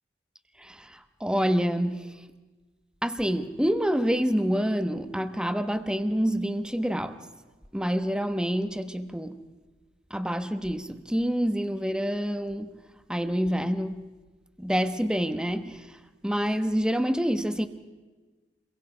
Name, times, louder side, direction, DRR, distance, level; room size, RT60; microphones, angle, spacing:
voice 1, 0.6-2.2 3.0-7.3 7.7-9.4 10.1-12.8 13.1-14.1 14.6-16.0 16.2-17.7, equal, 5° right, 1.1 m, -27 dB
29.5 x 23.0 x 5.1 m
head